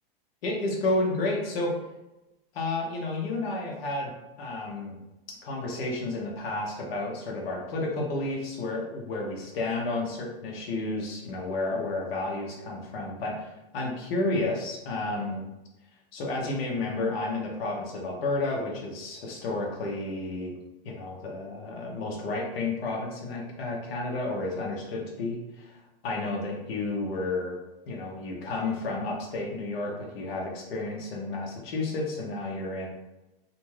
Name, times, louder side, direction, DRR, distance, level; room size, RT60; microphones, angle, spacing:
voice 1, 0.4-1.7 2.5-4.1 4.4-5.0 5.4-15.4 16.1-20.5 20.8-25.7 26.0-27.6 27.9-32.9, left 2 dB, 75° left, -1 dB, 0.8 m, -31 dB
2.6 x 2.2 x 3.1 m, 0.96 s
supercardioid pair, 145°, 30 cm